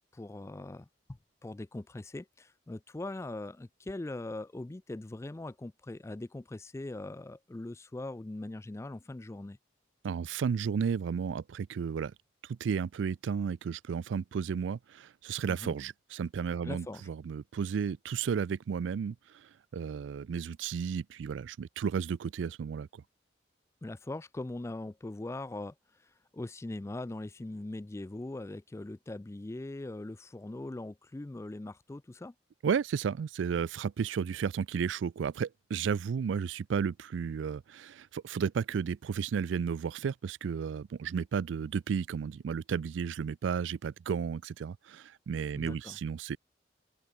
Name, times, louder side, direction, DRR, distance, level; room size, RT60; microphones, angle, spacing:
voice 1, 0.1-0.9 1.4-9.6 15.5-15.8 16.6-17.1 23.8-25.7 26.3-32.3 45.6-46.0, left 2 dB, 15° left, 0.3 m, -41 dB
voice 2, 10.0-12.1 12.5-19.2 19.7-22.9 32.6-46.4, right 6 dB, 85° right, 0.4 m, -33 dB
open air
head